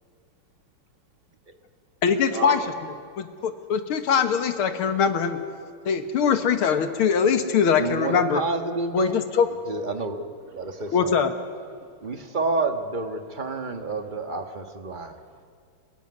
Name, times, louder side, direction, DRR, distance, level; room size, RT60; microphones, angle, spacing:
voice 1, 2.0-2.6 3.2-5.4 5.9-8.4 8.9-9.5 10.9-11.3, left 7 dB, 75° left, 8 dB, 2.2 m, -22 dB
voice 2, 7.8-9.2 9.7-10.2 10.5-11.2 12.0-15.2, right 3 dB, 25° right, 6 dB, 1.4 m, -29 dB
voice 3, 10.2-11.0 11.9-12.0 15.0-15.4, right 5 dB, 65° right, 1 dB, 3.9 m, -35 dB
27.5 x 15.5 x 9.7 m, 2.2 s
omnidirectional pair, 2.4 m